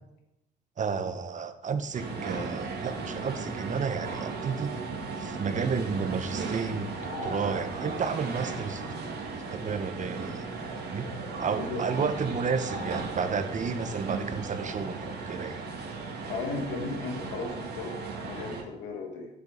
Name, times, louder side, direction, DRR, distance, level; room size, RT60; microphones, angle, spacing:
voice 1, 0.8-4.7 5.2-9.0 9.5-10.4 10.9-11.1 11.4-15.6, right 5 dB, 40° right, 9 dB, 1.1 m, -32 dB
sound 1, 1.9-18.6, right 4 dB, 60° right, 2.1 m, -36 dB
voice 2, 16.3-19.3, left 4 dB, 85° left, 2 dB, 2.1 m, -36 dB
11.5 x 6.8 x 5.1 m, 0.89 s
cardioid pair, 85°, 19 cm